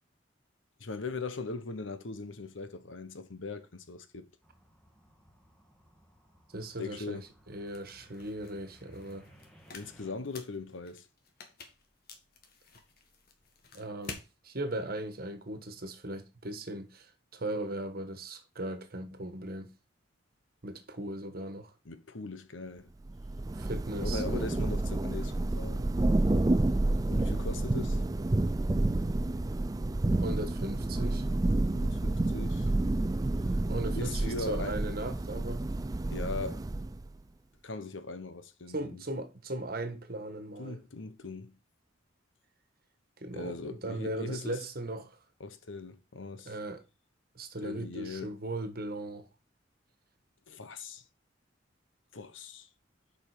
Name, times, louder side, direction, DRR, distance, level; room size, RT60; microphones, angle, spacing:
voice 1, 0.8-4.3 6.8-7.2 9.7-11.1 21.8-22.9 24.0-25.8 27.1-28.0 31.7-32.7 33.9-34.8 36.1-36.6 37.6-39.0 40.6-41.6 43.3-44.6 45.4-46.5 47.6-48.3 50.5-51.0 52.1-52.7, left 3 dB, 85° left, 1.1 m, -40 dB
sound 1, 4.4-10.1, equal, 5° left, 1.5 m, -60 dB
voice 2, 6.5-9.3 13.7-19.7 20.6-21.7 23.5-24.2 30.1-31.3 33.7-35.6 38.7-40.8 43.2-45.2 46.4-46.8 47.3-49.3, right 1 dB, 50° right, 1.4 m, -38 dB
sound 2, 7.7-14.3, left 4 dB, 50° left, 1.6 m, -50 dB
Thunder / Rain, 23.1-37.1, right 2 dB, 20° right, 0.4 m, -29 dB
7.1 x 5.4 x 5.0 m
head